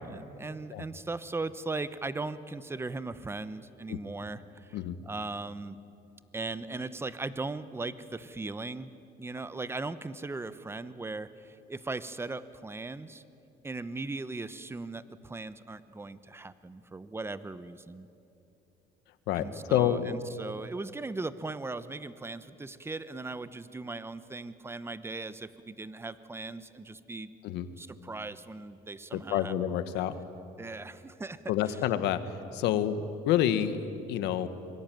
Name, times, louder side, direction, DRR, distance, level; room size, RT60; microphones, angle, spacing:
voice 1, 0.0-4.8 5.1-5.8 6.3-8.9 9.2-13.2 13.6-18.1 19.3-27.3 27.8-29.5 30.6-31.4, right 3 dB, 15° right, 14 dB, 1.0 m, -38 dB
voice 2, 19.3-20.1 27.4-27.7 29.1-30.2 31.5-33.8 34.1-34.5, left 11 dB, 90° left, 11 dB, 1.5 m, -28 dB
26.0 x 23.0 x 9.2 m, 2.8 s
cardioid pair, 110°, 17 cm